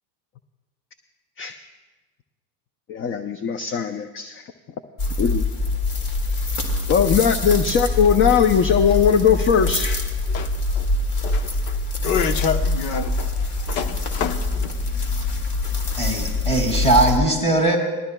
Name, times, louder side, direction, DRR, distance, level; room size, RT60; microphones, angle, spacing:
voice 1, 2.9-4.4 5.2-5.4 6.9-10.0, left 7 dB, 25° left, 10 dB, 0.4 m, -19 dB
sound 1, 5.0-17.2, left 2 dB, 50° left, 2.1 m, -24 dB
voice 2, 10.3-10.9 11.2-15.8, left 6 dB, 80° left, 9 dB, 1.0 m, -29 dB
voice 3, 16.0-17.8, right 2 dB, 10° left, 2 dB, 2.1 m, -19 dB
19.5 x 13.5 x 2.2 m, 1.2 s
hypercardioid pair, 90°, 50 cm